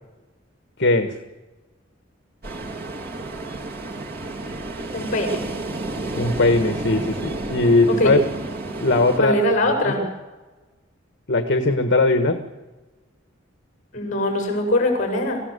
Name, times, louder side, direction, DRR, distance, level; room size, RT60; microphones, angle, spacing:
voice 1, 0.8-1.2 6.2-8.2 8.8-9.3 11.3-12.4, left 2 dB, 60° left, 6 dB, 1.5 m, -19 dB
Ocean, 2.4-9.2, right 2 dB, 50° right, 2.7 m, -31 dB
voice 2, 4.9-5.4 7.9-8.1 9.2-10.1 13.9-15.4, left 1 dB, 40° left, 3 dB, 7.3 m, -22 dB
25.0 x 16.5 x 6.9 m, 1.2 s
head